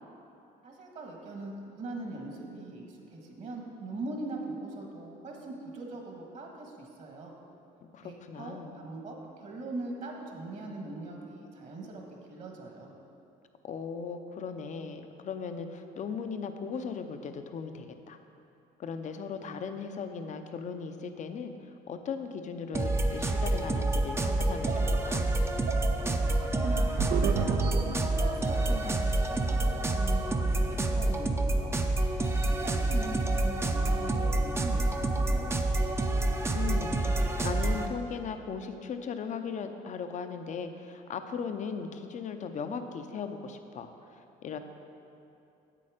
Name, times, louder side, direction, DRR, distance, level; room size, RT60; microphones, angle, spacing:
voice 1, 0.6-7.3 8.0-12.9 25.9-31.8 32.4-35.5, right 2 dB, 50° right, 1 dB, 1.6 m, -41 dB
voice 2, 7.9-8.8 13.6-18.2 18.8-21.5 21.9-25.2 36.5-43.9 44.4-44.6, left 6 dB, 45° left, 8 dB, 0.7 m, -38 dB
sound 1, 22.7-37.9, right 2 dB, 15° right, 0.6 m, -28 dB
sound 2, 24.2-28.6, right 7 dB, 70° right, 0.5 m, -34 dB
8.5 x 7.7 x 5.1 m, 2.7 s
cardioid pair, 110°, 17 cm